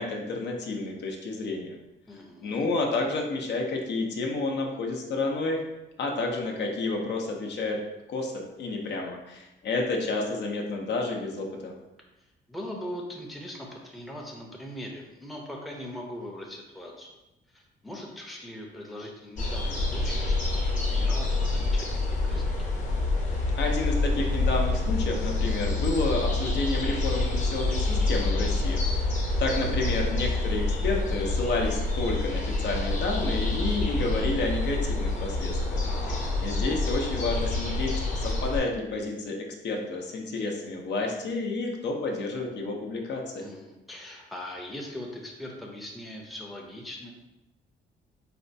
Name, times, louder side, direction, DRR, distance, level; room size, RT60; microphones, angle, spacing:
voice 1, 0.0-1.8 2.4-5.6 6.0-7.8 8.1-11.7 23.6-36.1 36.4-39.4 39.6-43.5, left 3 dB, 60° left, 1 dB, 0.6 m, -30 dB
voice 2, 2.1-2.7 12.2-17.2 17.5-22.5 35.8-36.4 43.3-47.1, left 1 dB, ahead, -1 dB, 0.6 m, -41 dB
sound 1, 19.4-38.6, left 2 dB, 40° left, 0.9 m, -27 dB
4.3 x 2.1 x 2.6 m, 0.97 s
cardioid pair, 90°, 20 cm